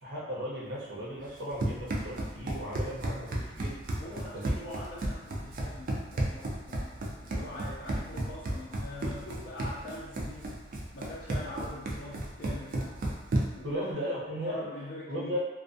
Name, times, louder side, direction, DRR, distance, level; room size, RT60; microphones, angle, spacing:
voice 1, 0.0-3.8 4.3-4.5 13.6-14.6 15.1-15.4, equal, 80° right, -7 dB, 0.8 m, -36 dB
Run, 1.3-13.7, right 1 dB, 50° right, 0.4 m, -34 dB
voice 2, 4.0-6.9 7.2-13.0 13.5-14.1 14.5-15.4, left 1 dB, 55° left, -6 dB, 0.4 m, -43 dB
2.3 x 2.3 x 2.5 m, 1.1 s
head